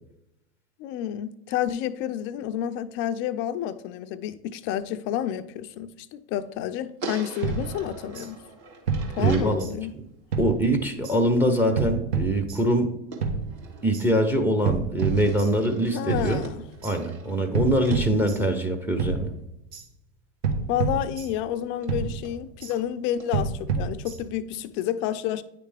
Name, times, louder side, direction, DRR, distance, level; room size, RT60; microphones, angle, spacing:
voice 1, 0.8-8.4 9.2-9.9 15.9-16.6 20.7-25.4, left 11 dB, 35° left, 0.4 m, -30 dB
sound 1, 7.0-9.6 13.1-14.5 15.0-19.1 21.0-21.1 21.4-21.5 21.8-21.9 22.2-22.4 22.7-22.8 23.2-23.3, right 3 dB, 50° right, 1.8 m, -42 dB
sound 2, 7.4-8.3 8.9-10.0 10.3-11.2 11.8-12.9 13.2-14.1 14.7-15.8 16.1-17.0 17.5-18.7 19.0-19.9 20.4-21.6 21.9-22.8 23.3-24.5, right 5 dB, 70° right, 1.2 m, -29 dB
voice 2, 9.2-9.7 10.4-12.9 13.8-16.4 16.8-19.3, right 1 dB, 5° right, 0.6 m, -23 dB
9.8 x 3.3 x 3.3 m
hypercardioid pair, 110°, 34 cm